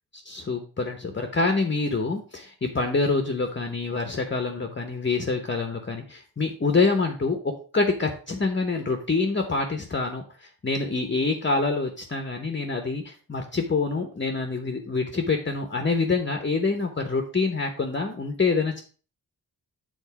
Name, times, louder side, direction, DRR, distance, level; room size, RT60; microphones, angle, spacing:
voice 1, 0.2-7.4 7.7-18.8, left 3 dB, 30° left, 5 dB, 0.9 m, -26 dB
7.1 x 3.9 x 5.7 m, 0.38 s
wide cardioid pair, 105°, 39 cm